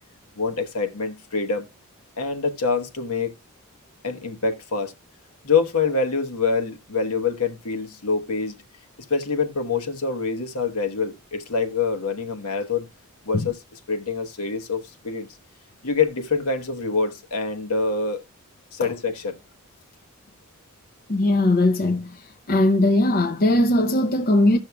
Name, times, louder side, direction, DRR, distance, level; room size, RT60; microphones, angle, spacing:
voice 1, 0.4-1.7 2.2-3.3 4.0-4.9 5.4-8.6 9.1-12.9 13.2-15.3 15.8-18.2 18.7-19.4, left 4 dB, 70° left, 1.1 m, -25 dB
voice 2, 21.1-22.2 22.5-24.6, left 1 dB, 40° left, 0.7 m, -19 dB
16.0 x 6.3 x 2.3 m
head